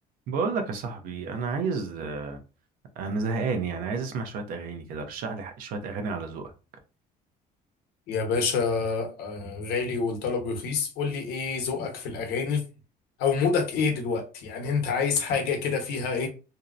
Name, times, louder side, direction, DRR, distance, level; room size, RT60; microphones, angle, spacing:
voice 1, 0.3-2.4 3.0-6.5, right 4 dB, 60° right, 0.6 m, -31 dB
voice 2, 8.1-12.6 13.2-16.3, left 5 dB, 80° left, 0.8 m, -27 dB
2.7 x 2.0 x 2.4 m
cardioid pair, 165°, 16 cm